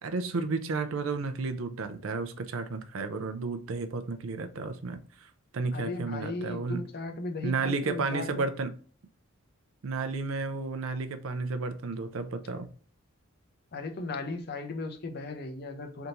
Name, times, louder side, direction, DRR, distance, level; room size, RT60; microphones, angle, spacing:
voice 1, 0.0-6.8 7.4-8.7 9.8-12.7, right 4 dB, 75° right, 0.5 m, -32 dB
voice 2, 5.7-8.5 13.7-16.1, left 3 dB, 50° left, 0.6 m, -36 dB
3.4 x 2.7 x 2.8 m
head